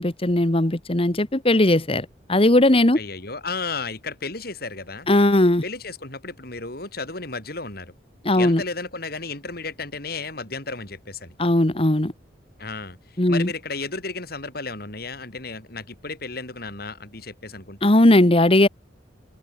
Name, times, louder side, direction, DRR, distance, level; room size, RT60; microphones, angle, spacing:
voice 1, 0.0-3.0 5.1-5.6 8.2-8.6 11.4-12.1 13.2-13.5 17.8-18.7, left 1 dB, 35° left, 1.6 m, -18 dB
voice 2, 3.0-5.1 5.6-7.9 8.3-11.4 12.6-17.9, left 4 dB, 60° left, 5.8 m, -33 dB
head